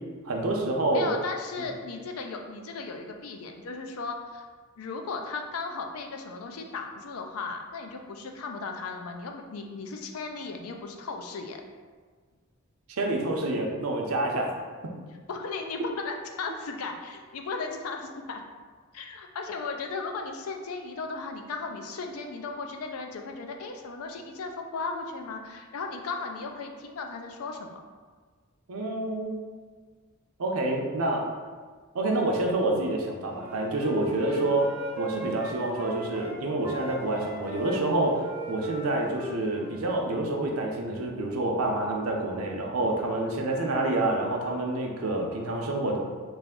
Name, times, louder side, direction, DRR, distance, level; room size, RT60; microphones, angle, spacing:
voice 1, 0.2-1.1 12.9-14.5 28.7-29.4 30.4-31.2 31.9-34.7 35.0-46.1, right 2 dB, 80° right, 0 dB, 0.6 m, -28 dB
voice 2, 0.9-4.5 4.8-11.6 15.3-18.4 18.9-27.8 34.3-34.5, left 4 dB, 90° left, 4 dB, 0.4 m, -36 dB
Wind instrument woodwind instrument, 33.3-36.3 36.6-39.9, equal, 10° right, 0.5 m, -37 dB
3.3 x 2.5 x 3.6 m, 1.5 s
head